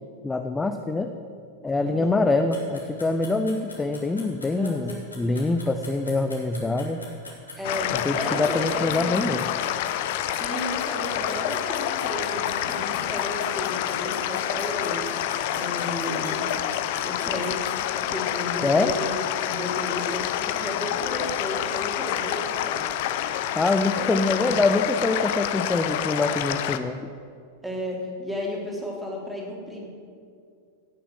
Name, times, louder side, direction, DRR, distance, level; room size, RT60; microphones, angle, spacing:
voice 1, 0.2-1.1 1.6-7.0 7.9-9.4 18.6-18.9 23.5-27.0, left 3 dB, 10° left, 6 dB, 0.6 m, -24 dB
voice 2, 1.8-2.3 4.6-4.9 5.2-5.3 7.6-9.3 10.3-15.1 15.5-16.5 17.0-17.7 18.0-19.2 19.4-22.9 23.8-24.1 24.4-24.6 27.6-29.9, left 1 dB, 5° right, -2 dB, 3.4 m, -33 dB
sound 1, 2.5-17.9, left 3 dB, 80° left, 2.9 m, -42 dB
sound 2, 7.6-26.8, left 11 dB, 50° left, 0.7 m, -28 dB
17.0 x 6.8 x 7.4 m, 2.3 s
figure-of-eight pair, 90°, 0 cm